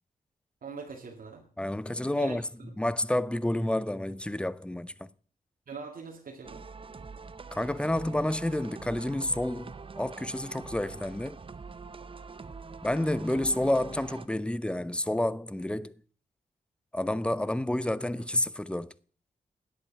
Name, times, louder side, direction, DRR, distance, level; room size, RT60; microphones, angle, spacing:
voice 1, 0.6-1.4 2.1-2.7 5.7-6.7, right 5 dB, 75° right, 2.1 m, -42 dB
voice 2, 1.6-5.1 7.5-11.4 12.8-16.0 16.9-18.9, left 1 dB, 5° left, 0.5 m, -29 dB
sound 1, 6.4-14.3, right 4 dB, 35° right, 0.6 m, -44 dB
10.5 x 8.4 x 6.8 m
cardioid pair, 75°, 15 cm